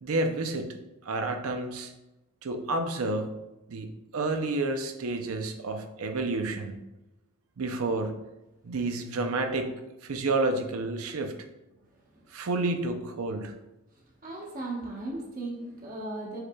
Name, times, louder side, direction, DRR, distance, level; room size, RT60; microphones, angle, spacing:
voice 1, 0.0-0.7 1.0-1.9 2.4-3.3 3.7-6.8 7.6-8.2 8.6-9.7 10.0-11.3 12.3-13.5, right 2 dB, 85° right, 6 dB, 0.5 m, -30 dB
voice 2, 14.2-16.4, right 2 dB, 40° right, -2 dB, 1.0 m, -37 dB
4.7 x 4.6 x 2.3 m, 0.98 s
head